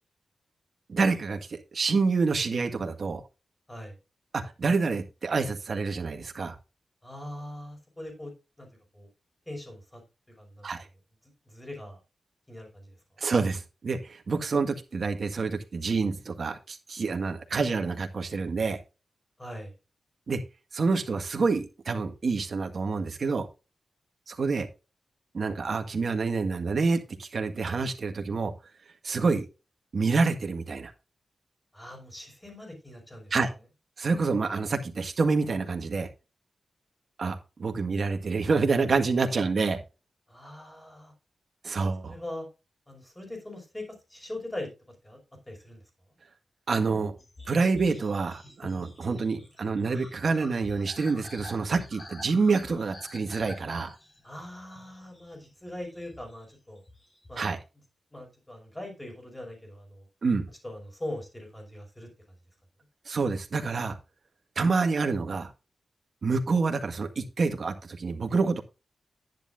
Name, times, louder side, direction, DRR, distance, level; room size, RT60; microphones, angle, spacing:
voice 1, 0.9-3.2 4.3-6.6 10.6-10.9 13.2-18.8 20.3-20.4 20.7-23.5 24.3-24.7 25.3-28.5 29.0-29.5 29.9-30.9 33.3-33.5 34.0-36.1 37.2-39.8 41.6-42.1 46.7-47.1 47.5-53.9 57.4-57.6 60.2-60.5 63.1-64.0 64.5-65.5 66.2-68.6, right 4 dB, 55° right, 5 dB, 1.8 m, -27 dB
voice 2, 7.0-8.7 8.9-9.1 9.5-10.0 10.3-10.8 11.5-12.0 12.5-13.0 19.4-19.7 31.7-33.3 40.3-41.1 42.0-42.5 42.9-43.8 44.1-44.7 45.0-45.2 45.5-45.8 54.2-56.8 57.3-57.4 58.1-60.1 60.6-62.1, left 1 dB, 10° left, 2 dB, 5.5 m, -41 dB
sound 1, 47.2-57.6, left 1 dB, 45° left, 4.0 m, -48 dB
10.5 x 10.5 x 2.6 m, 0.29 s
wide cardioid pair, 110°, 0 cm